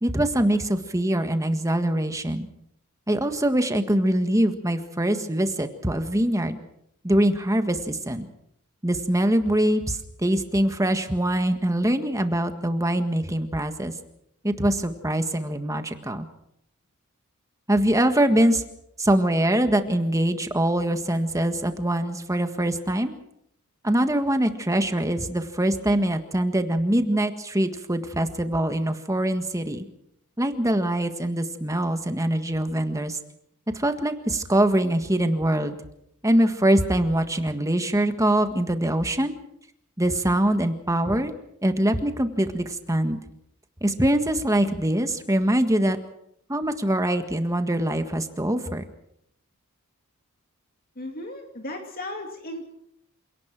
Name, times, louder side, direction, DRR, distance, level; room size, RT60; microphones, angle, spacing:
voice 1, 0.0-2.5 3.1-6.6 7.0-8.3 8.8-13.9 14.4-16.3 17.7-18.6 19.0-23.1 23.8-29.9 30.4-33.2 33.7-35.8 36.2-39.3 40.0-41.3 41.6-43.2 43.8-46.0 46.5-48.8, right 1 dB, 15° right, 8 dB, 1.7 m, -23 dB
voice 2, 51.0-52.7, left 1 dB, 45° left, 3 dB, 2.5 m, -35 dB
27.5 x 18.0 x 6.1 m, 0.75 s
head